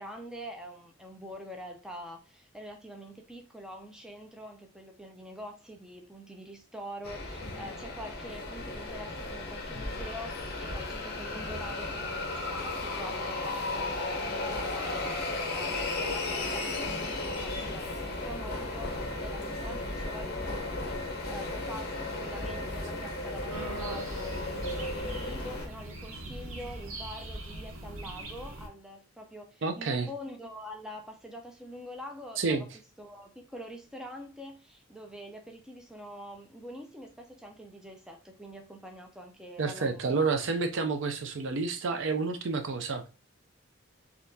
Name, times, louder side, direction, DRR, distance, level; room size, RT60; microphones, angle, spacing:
voice 1, 0.0-32.7 33.0-40.2, equal, 5° right, 0.4 m, -45 dB
sound 1, 7.0-25.7, left 2 dB, 50° left, 0.7 m, -35 dB
sound 2, 23.5-28.7, right 2 dB, 75° right, 0.8 m, -41 dB
voice 2, 29.6-30.1 32.4-32.7 39.6-43.1, right 4 dB, 60° right, 0.4 m, -29 dB
4.1 x 2.8 x 2.6 m
head